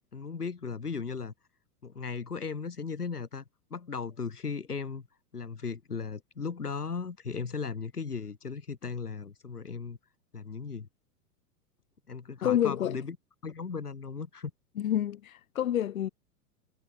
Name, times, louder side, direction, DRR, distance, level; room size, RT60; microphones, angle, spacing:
voice 1, 0.0-1.3 1.8-3.4 3.7-5.1 5.3-10.0 10.3-10.9 12.1-13.1 13.4-14.5, left 5 dB, 75° left, 6.8 m, -36 dB
voice 2, 12.4-13.0 14.8-16.1, left 11 dB, 60° left, 4.2 m, -28 dB
figure-of-eight pair, 100°, 46 cm